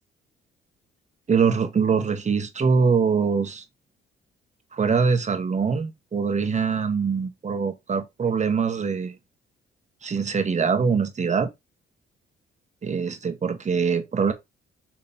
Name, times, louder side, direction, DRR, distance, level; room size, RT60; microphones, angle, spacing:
voice 1, 1.3-3.6 4.7-9.1 10.0-11.5 12.8-14.3, right 5 dB, 35° right, 1.5 m, -23 dB
7.2 x 3.6 x 3.7 m
cardioid pair, 90°, 20 cm